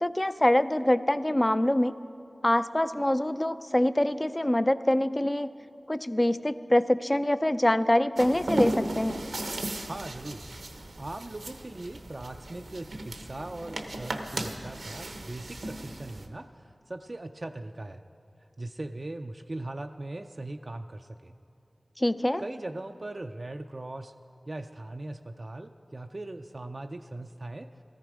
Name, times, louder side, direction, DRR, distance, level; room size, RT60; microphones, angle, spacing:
voice 1, 0.0-2.0 2.4-5.5 5.9-9.2 22.0-22.4, left 1 dB, 25° left, 13 dB, 0.4 m, -25 dB
sound 1, 8.2-16.3, right 1 dB, 85° right, 0.9 m, -36 dB
voice 2, 9.9-10.4 10.7-18.0 18.6-21.3 22.4-24.1 24.5-27.7, right 2 dB, 50° right, 5 dB, 0.4 m, -40 dB
14.0 x 13.5 x 4.9 m, 2.6 s
cardioid pair, 40°, 0 cm